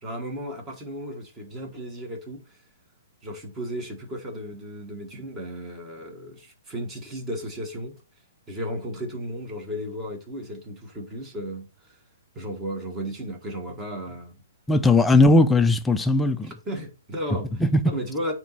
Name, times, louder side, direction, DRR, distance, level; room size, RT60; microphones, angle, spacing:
voice 1, 0.0-2.6 3.2-8.0 8.5-12.0 12.3-14.4 15.2-15.3 16.4-18.3, equal, 15° right, 1.4 m, -34 dB
voice 2, 14.7-16.5 17.6-17.8, left 2 dB, 5° left, 0.4 m, -18 dB
8.9 x 3.0 x 4.1 m
hypercardioid pair, 160°, 0 cm